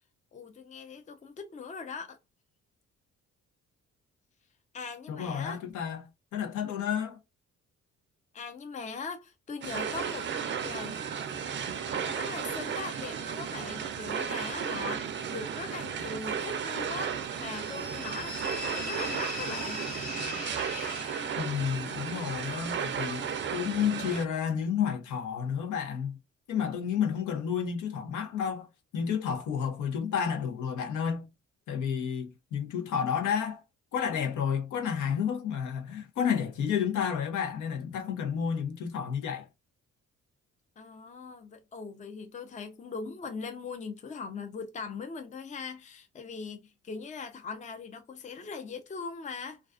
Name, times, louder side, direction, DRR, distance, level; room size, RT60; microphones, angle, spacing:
voice 1, 0.3-2.2 4.7-5.6 8.3-10.3 10.6-11.0 11.9-19.9 40.8-49.6, left 4 dB, 25° left, 0.5 m, -40 dB
voice 2, 5.1-7.2 21.4-26.2 26.5-28.7 28.9-31.3 31.7-33.6 33.9-39.5, left 7 dB, 75° left, 0.7 m, -31 dB
sound 1, 9.6-24.2, right 7 dB, 40° right, 0.4 m, -34 dB
sound 2, 17.5-21.7, left 4 dB, 50° left, 1.1 m, -40 dB
2.4 x 2.3 x 2.3 m
cardioid pair, 90°, 30 cm